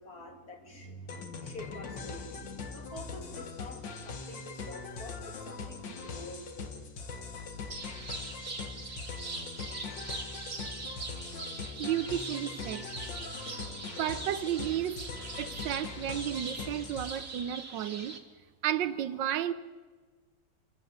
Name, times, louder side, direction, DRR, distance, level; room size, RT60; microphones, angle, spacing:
voice 1, 0.0-6.7 18.8-19.0, left 2 dB, 55° left, 3.0 m, -47 dB
sound 1, 1.1-17.4, left 4 dB, 85° left, 2.3 m, -42 dB
sound 2, 7.7-18.2, right 3 dB, 45° right, 2.0 m, -42 dB
voice 2, 11.8-12.8 14.0-15.0 15.4-18.1 18.6-19.5, right 11 dB, 85° right, 1.5 m, -32 dB
26.5 x 14.5 x 8.0 m
omnidirectional pair, 1.9 m